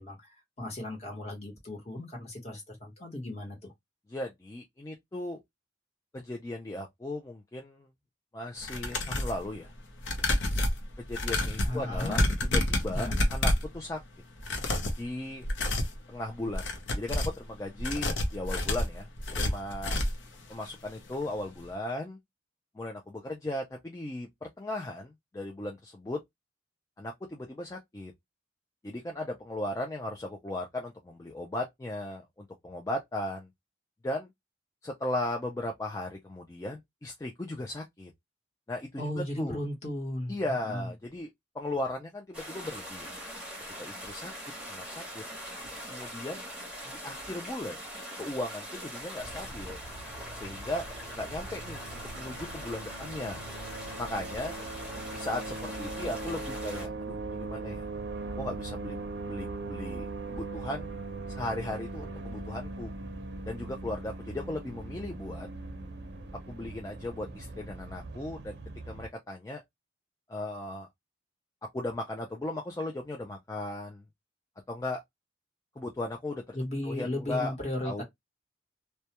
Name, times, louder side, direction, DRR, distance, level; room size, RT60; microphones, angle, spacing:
voice 1, 0.0-3.7 11.6-12.2 12.9-13.3 39.0-40.9 76.5-78.0, left 1 dB, 35° left, 1.0 m, -36 dB
voice 2, 4.1-5.4 6.1-7.9 8.3-9.7 11.0-12.2 12.5-14.0 15.0-15.4 16.1-16.7 16.9-20.0 20.5-22.2 22.7-26.2 27.0-28.1 28.8-33.5 34.0-34.3 34.8-38.1 38.7-39.6 40.3-43.1 43.8-44.3 44.7-45.2 45.9-46.4 46.9-47.8 48.2-49.8 50.3-50.8 51.1-53.4 54.0-54.6 55.1-57.9 58.4-60.9 61.3-62.9 63.4-65.5 66.5-68.6 68.9-69.6 70.3-70.9 71.7-74.0 74.7-75.0 75.8-76.6 76.9-77.5 77.8-78.0, left 1 dB, 15° left, 0.3 m, -37 dB
sound 1, 8.6-9.4 10.0-13.7 14.4-15.0 15.4-16.0 16.4-17.4 17.8-20.3 20.6-20.7 21.1-21.2, left 1 dB, 80° left, 0.6 m, -29 dB
sound 2, 42.3-56.9, equal, 5° right, 0.8 m, -42 dB
sound 3, 49.2-69.1, right 2 dB, 65° right, 0.5 m, -40 dB
2.2 x 2.2 x 2.8 m
head